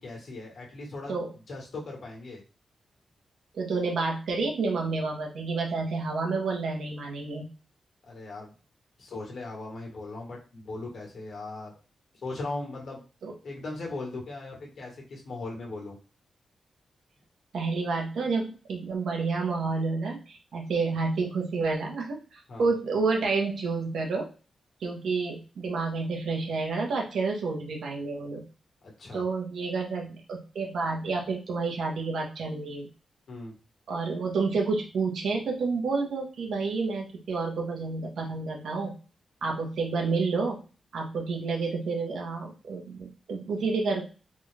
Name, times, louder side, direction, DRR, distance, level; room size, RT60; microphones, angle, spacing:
voice 1, 0.0-1.2 1.5-2.4 8.1-8.5 9.0-11.7 12.2-13.0 13.4-16.0 22.5-22.7 28.8-29.2 33.3-33.5, left 2 dB, 60° left, -1 dB, 1.6 m, -38 dB
voice 2, 3.5-7.5 13.2-13.3 17.5-24.3 24.8-28.4 29.1-32.9 33.9-39.0 39.4-40.6 40.9-44.1, right 4 dB, 85° right, 0 dB, 1.2 m, -29 dB
3.9 x 2.5 x 3.3 m, 0.35 s
wide cardioid pair, 150°, 0 cm